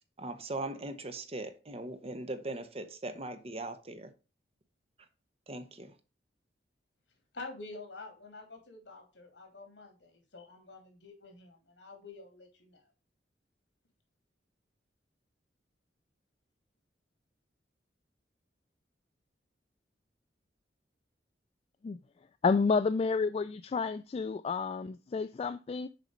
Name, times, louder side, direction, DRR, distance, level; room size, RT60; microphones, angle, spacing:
voice 1, 0.2-4.1 5.5-5.9, right 2 dB, 35° right, 1.0 m, -39 dB
voice 2, 7.3-12.9, left 3 dB, 75° left, 3.0 m, -48 dB
voice 3, 22.4-25.9, left 4 dB, 35° left, 0.3 m, -30 dB
6.7 x 5.1 x 5.1 m
head